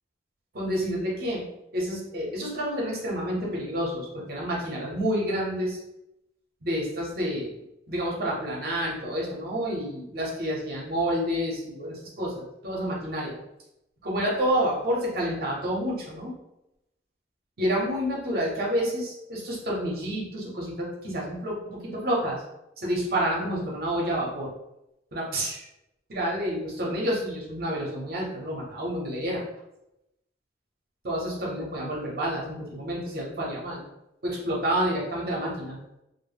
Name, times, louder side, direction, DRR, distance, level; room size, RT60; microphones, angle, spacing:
voice 1, 0.5-1.4 1.7-5.8 6.6-7.5 7.9-13.4 14.0-16.3 17.6-22.4 22.8-24.5 25.1-25.7 26.1-29.4 31.0-33.8 34.2-35.8, equal, 60° right, -3 dB, 0.7 m, -29 dB
2.0 x 2.0 x 3.3 m, 0.88 s
head